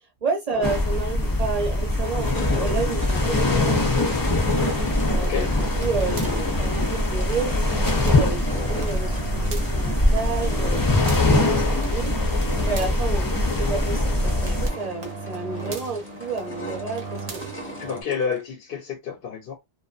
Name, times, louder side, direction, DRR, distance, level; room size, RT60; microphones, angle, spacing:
voice 1, 0.2-4.1 5.0-5.5 5.8-7.8 8.0-11.2 11.4-12.2 12.7-17.4, right 4 dB, 40° right, 0.7 m, -31 dB
sound 1, 0.6-14.7, left 2 dB, 30° left, 0.4 m, -22 dB
sound 2, 1.0-1.1 1.6-18.4, right 1 dB, 15° left, 0.7 m, -40 dB
sound 3, 4.6-18.0, right 3 dB, 70° right, 0.9 m, -37 dB
voice 2, 5.2-5.5 17.8-19.6, left 6 dB, 65° left, 0.8 m, -29 dB
2.5 x 2.2 x 2.3 m
omnidirectional pair, 1.1 m